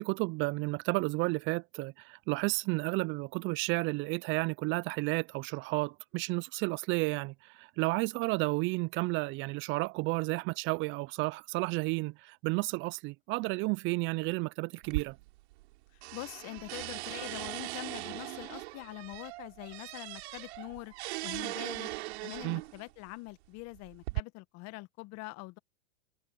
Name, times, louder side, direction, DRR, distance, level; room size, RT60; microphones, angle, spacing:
voice 1, 0.0-15.2 22.4-22.6, right 25 dB, 30° right, 0.5 m, -32 dB
sound 1, 14.8-15.7 16.0-22.8 23.6-24.2, right 21 dB, 55° right, 3.3 m, -39 dB
voice 2, 16.1-20.9 21.2-21.9 22.2-25.6, left 23 dB, 40° left, 1.6 m, -44 dB
hypercardioid pair, 105°, 38 cm